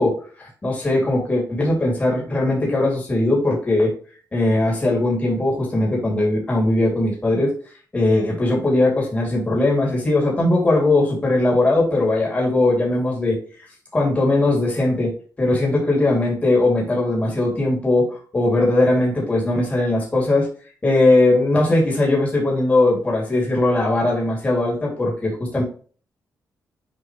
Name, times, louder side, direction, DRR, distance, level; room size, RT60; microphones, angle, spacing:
voice 1, 0.0-3.9 4.3-7.5 7.9-13.4 13.9-20.5 20.8-25.6, left 2 dB, 20° left, -3 dB, 2.9 m, -19 dB
7.8 x 5.0 x 3.2 m, 0.41 s
wide cardioid pair, 150°, 7 cm